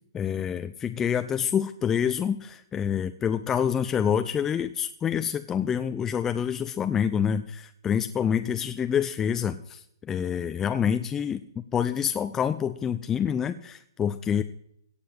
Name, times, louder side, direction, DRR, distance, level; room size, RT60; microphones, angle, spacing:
voice 1, 0.1-11.4 11.7-14.4, left 8 dB, 15° left, 9 dB, 0.6 m, -27 dB
17.0 x 6.9 x 7.6 m, 0.73 s
figure-of-eight pair, 125°, 2 cm